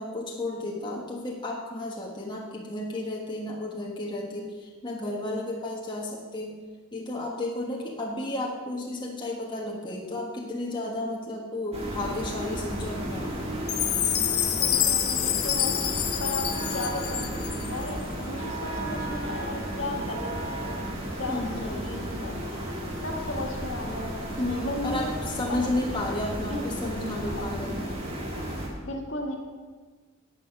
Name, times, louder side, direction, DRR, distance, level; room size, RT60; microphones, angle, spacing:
voice 1, 0.0-6.6 6.9-13.7 21.3-21.8 24.4-27.8, left 1 dB, 20° left, -3 dB, 1.3 m, -33 dB
sound 1, 11.7-28.7, equal, 30° right, 2.0 m, -33 dB
Chime, 13.7-17.9, left 11 dB, 90° left, 1.0 m, -27 dB
voice 2, 14.6-20.8 21.1-22.4 23.0-25.1 25.5-25.7 26.5-27.4 28.8-29.4, left 2 dB, 65° left, 1 dB, 1.8 m, -35 dB
11.0 x 9.2 x 6.0 m, 1.4 s
head